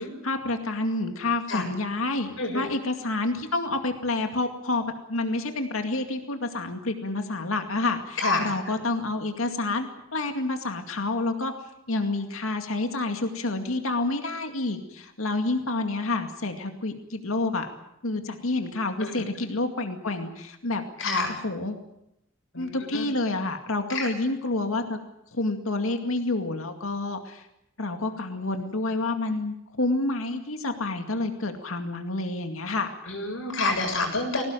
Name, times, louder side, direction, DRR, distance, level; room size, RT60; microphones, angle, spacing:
voice 1, 0.0-4.8 5.1-11.5 11.9-17.7 18.0-20.8 21.4-21.8 22.6-25.0 25.3-27.5 27.8-32.9, left 2 dB, 85° left, 5 dB, 2.3 m, -28 dB
voice 2, 2.4-2.8 8.2-8.7 19.0-19.2 21.0-21.4 22.5-23.0 23.9-24.1 33.1-34.4, left 2 dB, 70° left, 3 dB, 7.2 m, -28 dB
21.5 x 18.5 x 9.1 m, 0.83 s
head